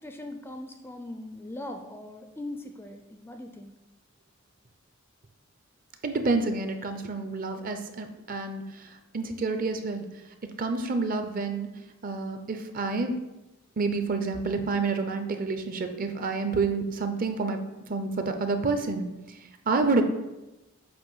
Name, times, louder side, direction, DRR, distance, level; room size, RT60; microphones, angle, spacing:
voice 1, 0.0-3.7, left 1 dB, 10° left, 5 dB, 0.4 m, -40 dB
voice 2, 6.0-10.0 10.6-11.7 12.0-13.2 13.8-17.6 17.9-19.1 19.7-20.0, right 3 dB, 45° right, 7 dB, 0.6 m, -28 dB
7.7 x 2.6 x 5.4 m, 1.0 s
head